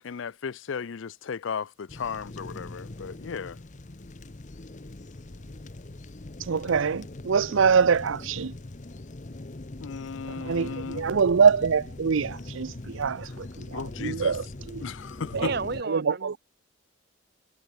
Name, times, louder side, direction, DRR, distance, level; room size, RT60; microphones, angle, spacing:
voice 1, 0.0-3.6 9.8-11.1 13.7-14.4 14.8-15.5, left 6 dB, 70° left, 0.5 m, -35 dB
sound 1, 1.9-15.8, left 2 dB, 35° left, 0.8 m, -41 dB
voice 2, 6.4-8.5 10.3-14.8 15.3-15.5 15.9-16.4, right 6 dB, 75° right, 0.5 m, -24 dB
voice 3, 15.3-16.4, right 4 dB, 50° right, 0.9 m, -32 dB
head